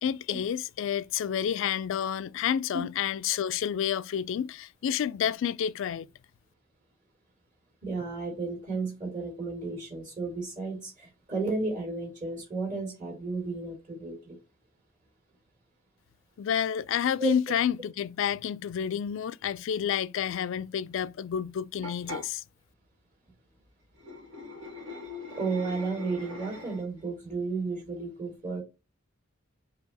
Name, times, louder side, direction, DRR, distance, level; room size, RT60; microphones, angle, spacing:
voice 1, 0.0-6.1 16.4-22.4, left 8 dB, 65° left, 0.3 m, -29 dB
voice 2, 7.8-14.4 17.2-17.3 25.4-28.6, right 3 dB, 40° right, 2.3 m, -33 dB
sound 1, 21.8-22.3 23.9-27.0, left 2 dB, 85° right, 1.7 m, -41 dB
4.7 x 2.9 x 4.0 m
head